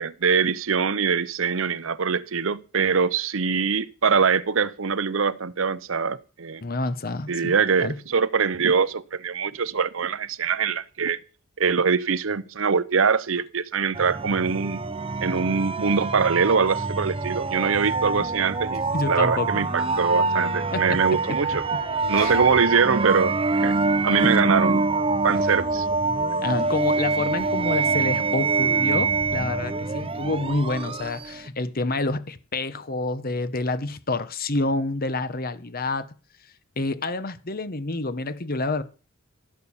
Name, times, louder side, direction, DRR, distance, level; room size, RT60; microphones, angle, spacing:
voice 1, 0.0-6.6 7.3-11.2 11.6-14.8 15.2-18.8 19.1-21.6 22.1-23.8 24.0-24.9 25.2-26.0, right 5 dB, 65° right, 0.7 m, -23 dB
voice 2, 6.6-7.5 7.8-7.9 18.0-18.3 18.9-19.7 20.7-21.4 22.1-22.4 24.2-24.3 26.4-36.1 36.8-38.8, left 2 dB, 45° left, 1.1 m, -28 dB
sound 1, 13.9-31.5, right 3 dB, 25° right, 0.6 m, -25 dB
15.5 x 6.8 x 7.2 m
head